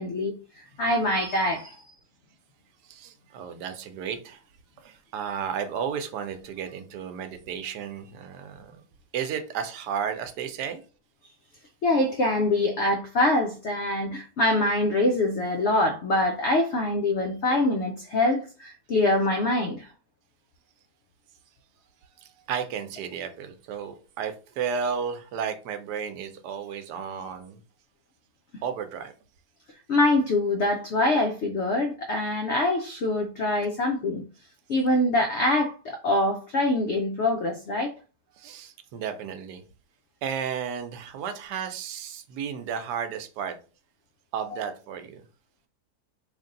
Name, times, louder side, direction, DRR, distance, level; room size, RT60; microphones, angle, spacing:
voice 1, 0.0-1.8 11.8-19.9 29.9-34.3 34.7-37.9, left 2 dB, 85° left, 0.6 m, -24 dB
voice 2, 2.8-4.4 4.8-8.8 9.1-10.8 22.0-27.6 28.6-29.1 38.3-39.6 40.2-43.6 44.3-45.2, right 7 dB, 80° right, 1.2 m, -33 dB
3.3 x 2.6 x 3.7 m
omnidirectional pair, 1.8 m